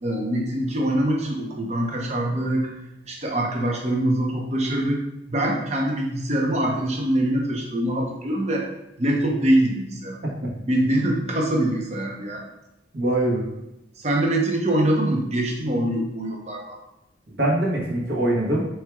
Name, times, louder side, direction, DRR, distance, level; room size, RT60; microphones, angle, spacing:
voice 1, 0.0-2.7 3.0-5.0 5.3-8.7 9.0-10.2 10.6-12.5 14.0-16.8, right 1 dB, 35° right, 0 dB, 0.7 m, -24 dB
voice 2, 12.9-13.5 17.3-18.6, right 1 dB, 60° right, -3 dB, 1.1 m, -23 dB
4.6 x 4.5 x 2.3 m, 0.86 s
head